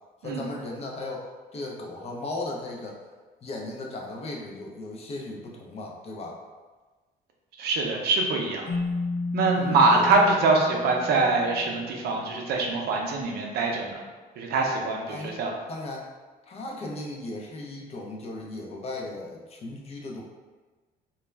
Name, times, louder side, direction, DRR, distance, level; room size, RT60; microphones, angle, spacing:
voice 1, 0.2-1.2 1.5-3.0 3.4-6.4 9.5-10.4 15.1-15.4 15.7-16.1 16.5-20.2, left 2 dB, 40° left, -1 dB, 0.5 m, -36 dB
voice 2, 7.6-8.7 9.3-14.0 14.4-15.5, right 3 dB, 70° right, 1 dB, 0.5 m, -24 dB
Keyboard (musical), 8.7-11.9, left 3 dB, 60° left, 0.9 m, -32 dB
2.3 x 2.0 x 3.3 m, 1.3 s
cardioid pair, 110°, 17 cm